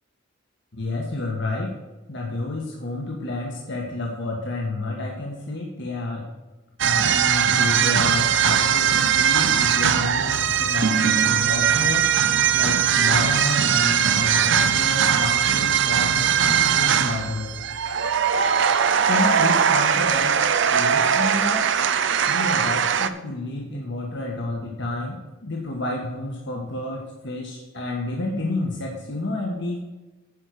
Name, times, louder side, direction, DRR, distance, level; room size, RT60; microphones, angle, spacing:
voice 1, 0.7-1.7 2.1-6.3 6.8-12.1 12.5-17.6 19.0-20.4 20.7-21.6 22.3-29.8, left 2 dB, 60° left, -1 dB, 1.7 m, -30 dB
sound 1, 6.8-23.1, right 8 dB, 60° right, 0.6 m, -20 dB
9.9 x 5.5 x 6.6 m, 1.1 s
head